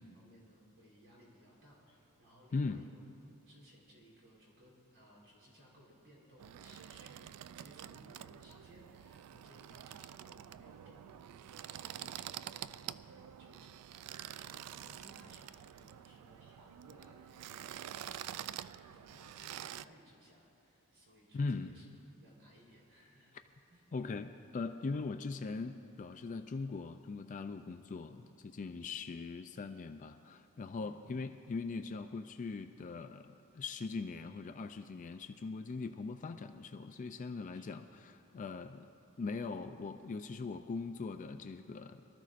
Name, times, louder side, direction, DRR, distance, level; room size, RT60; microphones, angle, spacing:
voice 1, 0.1-3.0 3.5-13.8 14.2-21.9 22.2-23.3 23.7-23.8 28.7-28.8 30.8-31.1 37.5-37.7, equal, 60° right, -5 dB, 3.7 m, -62 dB
sound 1, 6.4-19.8, right 11 dB, 90° right, 0.3 m, -47 dB
voice 2, 21.3-21.7 23.9-38.9 39.2-42.0, left 4 dB, 35° left, 8 dB, 0.3 m, -40 dB
23.5 x 13.5 x 2.5 m, 2.7 s
head